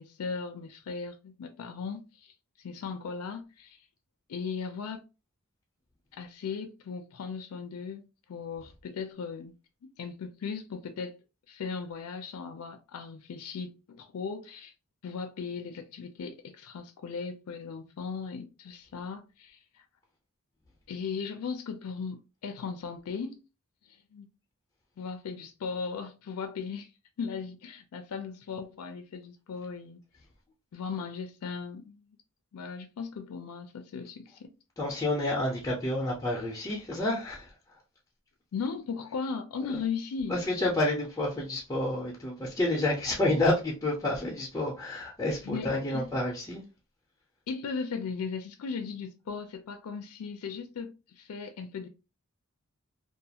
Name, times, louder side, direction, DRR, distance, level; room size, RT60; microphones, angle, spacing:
voice 1, 0.0-2.3 2.6-3.8 4.3-5.0 6.1-8.0 8.3-9.5 9.8-11.2 11.5-14.7 15.0-19.8 20.9-23.4 23.9-24.3 25.0-26.9 27.2-30.0 30.7-32.0 32.5-34.6 38.5-40.4 45.4-46.1 47.5-51.9, left 5 dB, 90° left, 0.4 m, -37 dB
voice 2, 34.8-37.5 40.3-46.6, left 1 dB, 15° left, 0.5 m, -29 dB
2.4 x 2.3 x 2.7 m
head